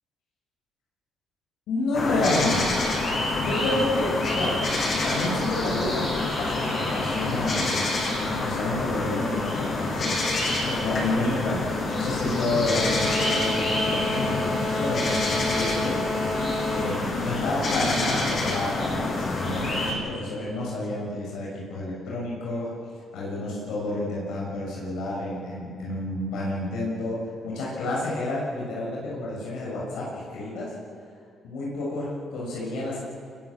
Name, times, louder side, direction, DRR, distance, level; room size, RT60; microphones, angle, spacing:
voice 1, 1.7-4.6 5.0-10.2 10.6-16.3 16.7-22.7 23.1-27.2 27.4-30.7 31.4-33.0, left 2 dB, 85° left, -5 dB, 6.7 m, -30 dB
sound 1, 1.9-19.9, left 2 dB, 50° left, 7.4 m, -26 dB
24.5 x 21.5 x 7.2 m, 2.3 s
cardioid pair, 90°, 0 cm